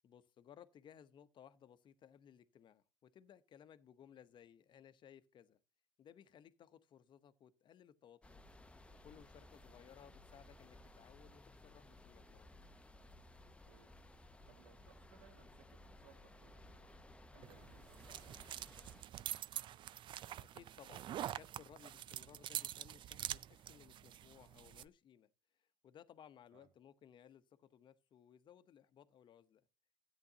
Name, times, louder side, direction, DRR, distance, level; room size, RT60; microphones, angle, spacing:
voice 1, 0.0-5.6 6.0-8.4 9.0-12.5 20.4-25.3 25.6-29.6, left 9 dB, 45° left, 0.9 m, -61 dB
sound 1, 8.2-19.0, left 1 dB, 10° left, 0.8 m, -59 dB
voice 2, 9.4-9.8 13.6-17.0 17.3-19.8 26.5-26.7, right 7 dB, 80° right, 2.5 m, -68 dB
sound 2, 17.4-24.9, right 11 dB, 50° right, 0.4 m, -46 dB
13.5 x 9.2 x 2.8 m
supercardioid pair, 80°, 11 cm